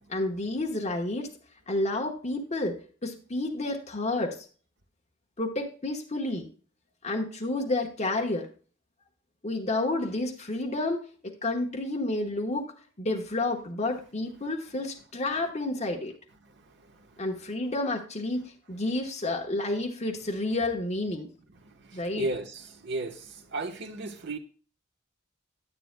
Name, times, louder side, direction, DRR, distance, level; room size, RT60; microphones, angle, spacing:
voice 1, 0.1-1.3 1.7-2.7 3.0-4.4 5.4-6.5 7.0-8.5 9.4-12.7 13.0-16.1 17.2-18.4 18.7-21.3 21.9-22.3, left 2 dB, 35° left, 1.1 m, -30 dB
voice 2, 22.2-23.2 23.5-24.4, right 2 dB, 60° right, 1.2 m, -33 dB
9.9 x 9.2 x 2.2 m
head